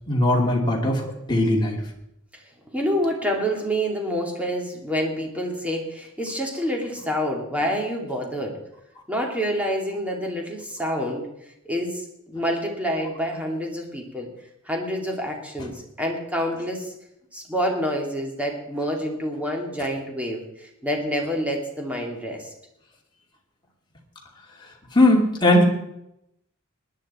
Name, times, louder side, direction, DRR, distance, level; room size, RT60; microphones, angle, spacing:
voice 1, 0.1-1.8 24.9-25.7, left 1 dB, 20° left, -2 dB, 2.6 m, -19 dB
voice 2, 2.7-8.6 9.1-11.3 11.6-14.3 14.6-16.9 17.3-22.5, equal, 5° right, 0 dB, 2.5 m, -27 dB
19.0 x 10.5 x 4.3 m, 0.81 s
head